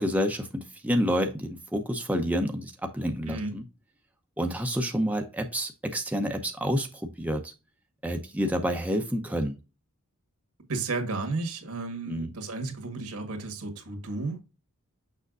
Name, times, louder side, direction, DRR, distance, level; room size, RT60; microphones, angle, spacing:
voice 1, 0.0-3.6 4.4-7.5 8.0-9.6 12.1-12.3, equal, 5° right, 0.7 m, -29 dB
voice 2, 10.7-14.5, right 3 dB, 80° right, 1.7 m, -33 dB
6.6 x 5.7 x 2.5 m
head